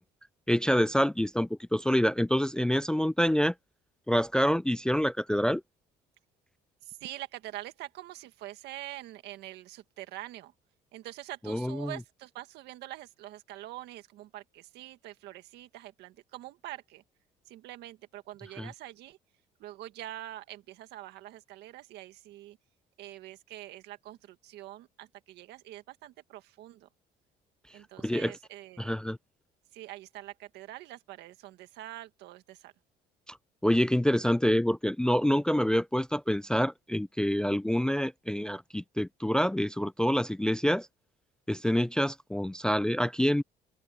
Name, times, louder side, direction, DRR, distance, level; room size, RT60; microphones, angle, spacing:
voice 1, 0.5-3.5 4.1-5.6 11.5-11.9 18.6-18.7 28.0-28.3 28.8-29.2 33.3-33.4 33.6-40.9 41.5-43.4, equal, 5° left, 0.3 m, -27 dB
voice 2, 6.8-10.5 10.9-17.0 17.4-19.2 19.6-22.6 23.0-26.9 27.7-28.9 29.7-32.7, right 15 dB, 85° right, 1.9 m, -45 dB
open air
cardioid pair, 110°, 17 cm